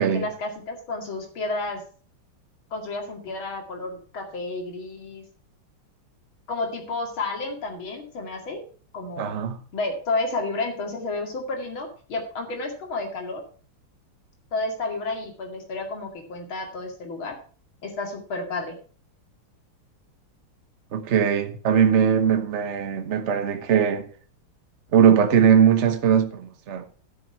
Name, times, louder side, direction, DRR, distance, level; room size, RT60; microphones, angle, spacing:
voice 1, 0.0-1.8 2.7-5.2 6.5-8.6 8.9-9.4 9.7-13.4 14.5-17.4 17.8-18.8, left 3 dB, 70° left, 3.1 m, -31 dB
voice 2, 9.2-9.6 20.9-24.1 24.9-26.9, right 8 dB, 45° right, 1.1 m, -20 dB
12.5 x 6.3 x 5.8 m
omnidirectional pair, 2.4 m